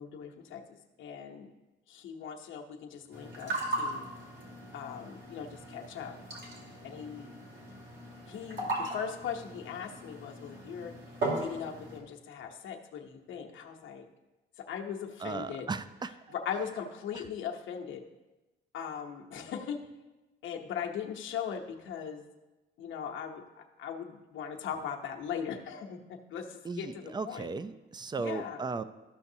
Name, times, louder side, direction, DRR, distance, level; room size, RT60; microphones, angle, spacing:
voice 1, 0.0-1.5 1.9-4.1 4.7-6.2 6.8-7.4 8.3-10.9 11.3-14.0 14.6-15.7 16.3-18.0 18.7-19.8 20.4-22.2 22.8-27.5 28.2-28.6, left 7 dB, 75° left, 2 dB, 0.9 m, -39 dB
sound 1, 3.1-12.0, right 2 dB, 65° right, 2.5 m, -38 dB
voice 2, 15.2-16.1 26.6-28.8, right 4 dB, 20° right, 13 dB, 0.4 m, -36 dB
13.0 x 5.8 x 2.7 m, 1.1 s
cardioid pair, 90°, 20 cm